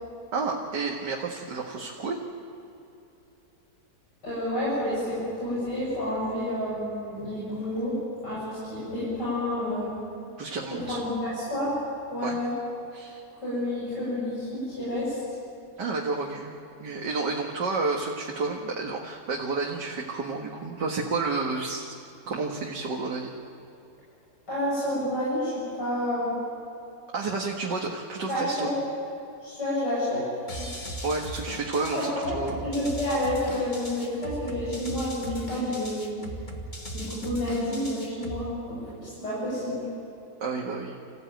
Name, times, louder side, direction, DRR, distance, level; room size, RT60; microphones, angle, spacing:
voice 1, 0.3-2.2 10.4-11.0 12.2-12.4 12.9-13.2 15.8-16.5 16.8-21.9 22.3-23.3 27.1-28.7 31.0-32.6 40.4-41.0, right 3 dB, 90° right, -1 dB, 2.3 m, -30 dB
voice 2, 4.2-7.9 8.2-9.9 10.7-11.8 12.1-12.5 13.4-15.2 24.5-26.4 28.3-28.7 29.4-30.2 30.6-30.7 31.9-32.2 32.6-36.1 36.9-39.8, left 1 dB, 85° left, -9 dB, 8.4 m, -29 dB
sound 1, 30.5-38.5, equal, 25° left, 2.1 m, -38 dB
27.5 x 15.5 x 9.2 m, 2.8 s
omnidirectional pair, 1.8 m